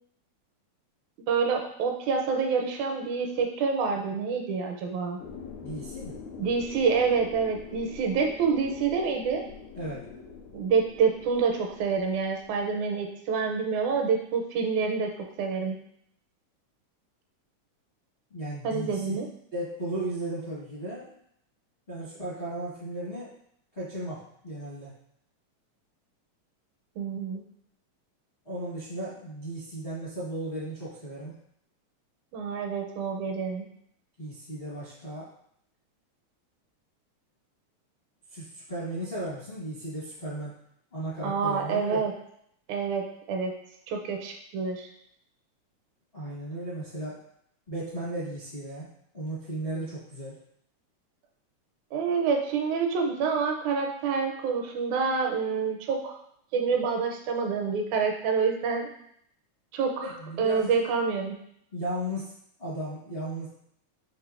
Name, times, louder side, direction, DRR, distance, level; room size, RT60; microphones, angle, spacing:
voice 1, 1.3-5.2 6.4-9.4 10.5-15.1 15.4-15.8 18.6-19.3 27.0-27.4 32.3-33.6 41.2-42.1 42.7-43.5 43.9-44.9 51.9-56.2 56.5-58.9 59.7-61.4, right 5 dB, 80° right, 3 dB, 1.9 m, -27 dB
sound 1, 5.2-12.6, left 5 dB, 80° left, 1.9 m, -44 dB
voice 2, 5.6-6.1 9.7-10.1 18.3-19.2 19.5-21.1 21.9-23.3 23.7-24.9 28.4-31.3 34.2-35.3 38.3-40.5 40.9-42.0 46.1-47.2 47.7-48.9 49.1-50.3 60.2-60.8 61.7-62.3 62.6-63.5, right 1 dB, 45° left, -10 dB, 0.7 m, -35 dB
5.6 x 3.4 x 2.4 m, 0.70 s
omnidirectional pair, 3.4 m